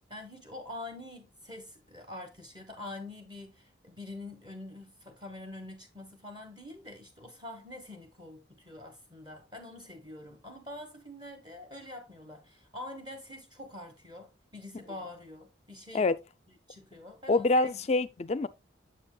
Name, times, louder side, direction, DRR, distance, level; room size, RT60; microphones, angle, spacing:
voice 1, 0.1-16.1 16.7-17.8, left 2 dB, 20° right, 1.1 m, -45 dB
voice 2, 17.3-18.5, left 2 dB, 35° left, 0.3 m, -26 dB
8.0 x 7.3 x 2.2 m
head